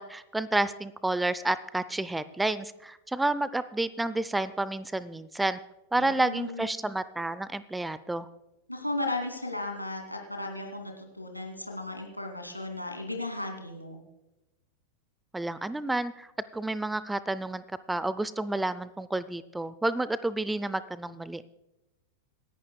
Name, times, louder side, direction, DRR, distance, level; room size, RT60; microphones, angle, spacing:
voice 1, 0.0-5.6 5.9-8.3 15.3-16.3 16.5-21.4, right 2 dB, 5° right, 16 dB, 0.5 m, -30 dB
voice 2, 5.9-6.7 8.7-14.0, left 2 dB, 90° left, 3 dB, 2.6 m, -35 dB
27.0 x 11.0 x 2.3 m, 0.96 s
figure-of-eight pair, 90°, 0 cm